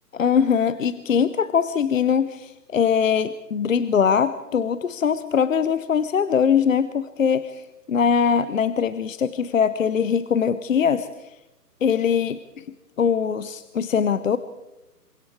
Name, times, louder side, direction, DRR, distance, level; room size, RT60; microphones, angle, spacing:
voice 1, 0.1-11.1 11.8-12.4 13.0-14.4, left 7 dB, 55° left, 14 dB, 0.9 m, -22 dB
28.0 x 23.5 x 4.8 m, 0.99 s
figure-of-eight pair, 150°, 49 cm